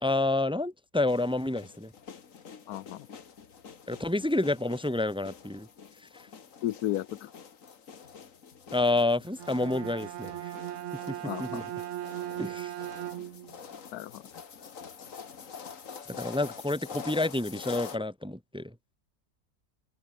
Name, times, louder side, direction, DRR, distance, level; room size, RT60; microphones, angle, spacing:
voice 1, 0.0-1.9 3.9-5.7 6.1-6.3 8.7-10.5 11.1-11.6 12.4-12.7 16.2-18.7, left 2 dB, 5° right, 1.0 m, -29 dB
sound 1, 1.1-18.0, left 6 dB, 60° left, 1.9 m, -46 dB
voice 2, 2.7-3.1 6.6-7.3 11.2-11.6 13.9-14.2, left 13 dB, 85° left, 1.2 m, -33 dB
Bowed string instrument, 9.3-13.6, right 13 dB, 65° right, 0.8 m, -38 dB
omnidirectional pair, 1.6 m